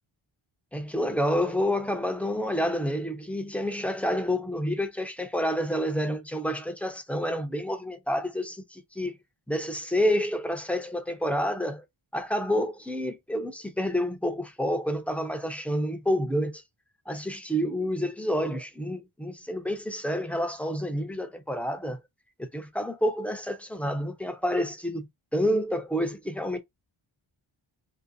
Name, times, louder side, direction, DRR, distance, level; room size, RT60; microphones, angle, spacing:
voice 1, 0.7-9.2 9.5-11.8 12.1-16.6 17.1-22.0 22.4-25.0 25.3-26.6, equal, 5° left, 0.5 m, -29 dB
3.1 x 2.6 x 2.6 m
wide cardioid pair, 130°, 50 cm